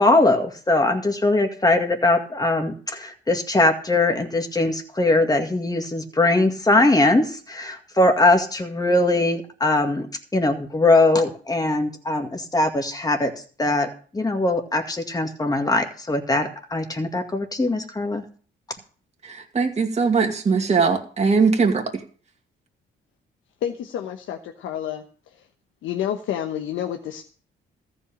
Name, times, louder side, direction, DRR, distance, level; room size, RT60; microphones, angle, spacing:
voice 1, 0.0-10.1 10.3-13.3 13.6-18.2, left 2 dB, 20° left, 5 dB, 2.0 m, -21 dB
voice 2, 19.2-22.0, right 5 dB, 35° right, 3 dB, 2.3 m, -21 dB
voice 3, 23.6-25.0 25.8-27.2, left 10 dB, 80° left, 5 dB, 1.1 m, -29 dB
14.0 x 5.5 x 8.7 m, 0.43 s
cardioid pair, 90°, 20 cm